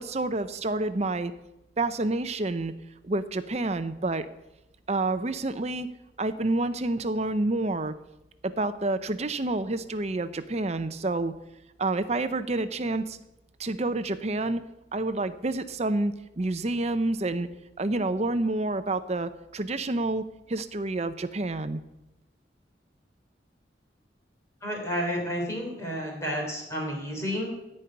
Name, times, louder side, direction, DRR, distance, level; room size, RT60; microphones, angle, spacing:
voice 1, 0.0-1.3 1.8-2.7 3.0-4.3 4.9-5.9 6.2-7.9 8.4-11.3 11.8-13.2 13.6-14.6 14.9-17.5 17.8-21.8, right 2 dB, 35° right, 11 dB, 0.7 m, -28 dB
voice 2, 24.6-27.5, equal, 15° left, -1 dB, 3.3 m, -31 dB
16.0 x 5.4 x 8.7 m, 0.93 s
head